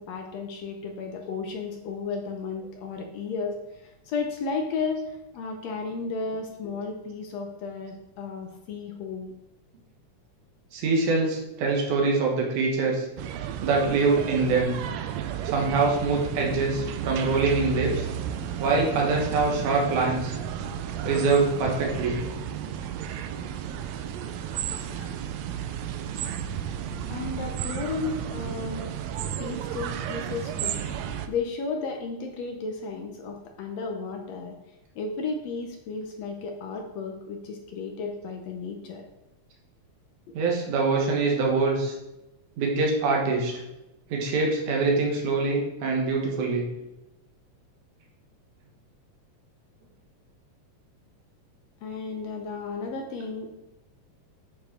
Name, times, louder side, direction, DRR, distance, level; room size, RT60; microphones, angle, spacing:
voice 1, 0.0-9.3 27.1-28.9 29.4-34.6 35.0-39.0 51.8-53.5, left 4 dB, 70° left, 3 dB, 1.7 m, -33 dB
voice 2, 10.7-13.0 13.6-14.7 15.4-18.1 18.6-20.4 21.0-22.2 25.0-25.1 40.3-41.9 42.6-43.5 44.1-46.6, right 3 dB, 70° right, -1 dB, 2.9 m, -24 dB
sound 1, 13.2-31.3, right 9 dB, 85° right, 1.5 m, -33 dB
8.6 x 4.7 x 4.4 m, 0.94 s
omnidirectional pair, 3.7 m